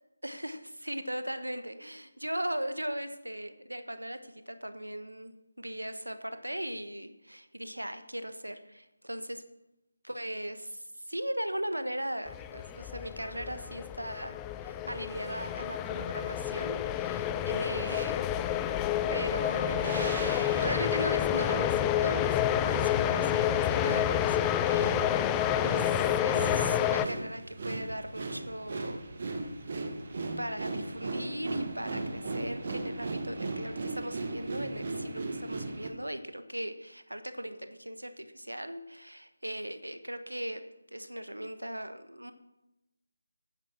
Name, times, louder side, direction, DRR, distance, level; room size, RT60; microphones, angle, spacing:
voice 1, 0.2-9.4 10.0-14.4 14.6-18.4 19.1-20.2 20.6-24.9 25.7-26.0 26.2-29.0 30.4-40.6 40.9-42.3, equal, 85° right, 10 dB, 1.2 m, -38 dB
sound 1, 12.3-27.1, left 10 dB, 10° left, 0.3 m, -29 dB
sound 2, 17.7-18.1 19.0-35.9, right 3 dB, 40° right, 1.5 m, -38 dB
9.3 x 9.2 x 6.0 m, 0.92 s
figure-of-eight pair, 155°, 0 cm